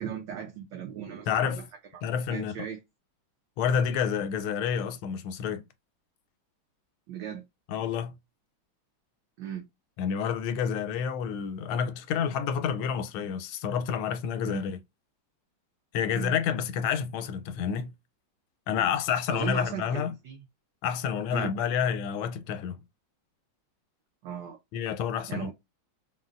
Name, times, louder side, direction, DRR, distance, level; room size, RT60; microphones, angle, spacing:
voice 1, 0.0-1.6 1.9-2.0 2.3-2.8 7.1-7.4 9.4-9.6 14.4-14.6 16.1-16.3 18.7-18.9 19.3-20.4 21.3-21.5 24.2-24.6 25.3-25.5, right 8 dB, 70° right, 1.2 m, -37 dB
voice 2, 1.3-1.6 2.0-2.5 3.6-5.6 7.7-8.1 10.0-14.8 15.9-17.9 18.7-20.1 20.8-22.8 24.7-25.5, left 7 dB, 85° left, 1.4 m, -29 dB
3.9 x 2.1 x 2.4 m
omnidirectional pair, 2.3 m